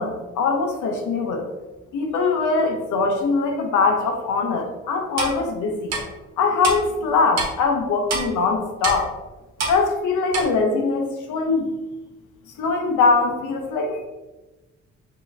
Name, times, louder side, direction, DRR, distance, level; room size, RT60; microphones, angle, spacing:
voice 1, 0.0-1.5 1.9-6.0 6.4-9.1 9.7-11.7 12.6-14.1, left 4 dB, 80° left, 3 dB, 0.9 m, -22 dB
Clock, 5.2-5.3 5.9-6.0 6.6-6.8 7.4-7.5 8.1-8.2 8.8-9.0 9.6-9.8 10.3-10.4, right 3 dB, 60° right, 1.1 m, -25 dB
4.5 x 3.0 x 3.4 m, 1.1 s
cardioid pair, 90°, 30 cm